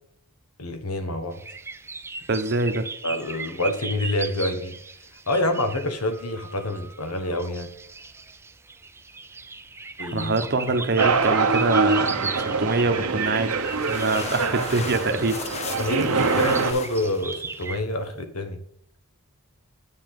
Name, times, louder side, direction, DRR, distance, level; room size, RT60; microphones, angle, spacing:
voice 1, 0.6-1.4 3.0-4.8 5.3-7.7 10.0-10.3 15.8-18.6, left 1 dB, 80° left, 7 dB, 1.4 m, -27 dB
sound 1, 1.3-17.8, right 4 dB, 10° right, 0.4 m, -38 dB
voice 2, 2.3-2.9 10.1-15.5, right 3 dB, 50° right, 7 dB, 1.0 m, -25 dB
sound 2, 11.0-16.7, right 4 dB, 80° right, 1.0 m, -24 dB
sound 3, 13.2-18.2, left 4 dB, 30° left, 0.7 m, -37 dB
8.7 x 7.3 x 3.8 m, 0.69 s
head